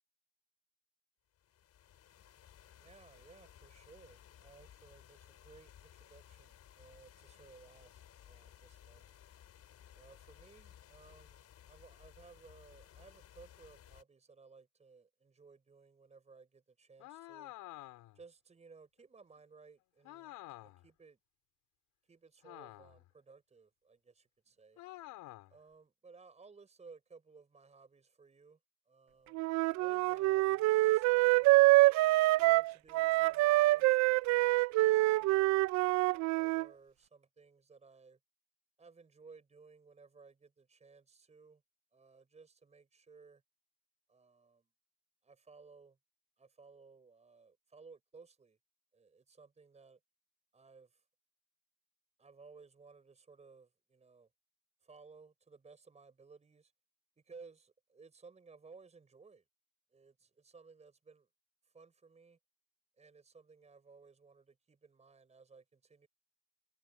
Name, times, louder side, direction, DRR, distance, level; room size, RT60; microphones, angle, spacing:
sound 1, 1.3-14.0, left 10 dB, 40° left, 5.9 m, -59 dB
voice 1, 2.8-9.2 9.9-17.5 18.1-21.2 22.0-24.8 25.5-28.6 28.9-29.4 29.8-31.9 32.4-35.6 35.9-38.2 38.8-41.6 41.9-43.4 44.1-44.7 45.2-46.0 46.4-48.6 48.9-50.0 50.5-51.1 52.2-54.3 54.8-56.7 57.2-59.4 59.9-61.3 61.6-62.4 63.0-66.1, right 4 dB, 15° right, 5.3 m, -59 dB
sound 2, 17.0-18.2 20.0-20.9 22.4-23.1 24.8-25.6, left 17 dB, 55° left, 5.0 m, -50 dB
Wind instrument woodwind instrument, 29.3-36.6, right 19 dB, 45° right, 0.6 m, -26 dB
supercardioid pair, 115°, 39 cm